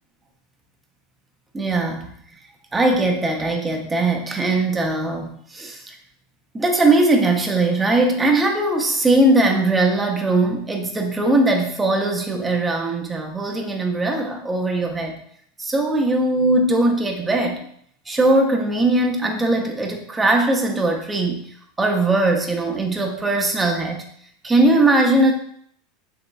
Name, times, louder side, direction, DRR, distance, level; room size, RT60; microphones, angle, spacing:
voice 1, 1.5-2.1 2.7-6.0 6.5-15.2 15.6-17.7 18.1-21.5 21.8-24.1 24.4-25.3, right 2 dB, 15° right, 2 dB, 0.5 m, -20 dB
3.5 x 2.9 x 2.3 m, 0.64 s
supercardioid pair, 130°, 0 cm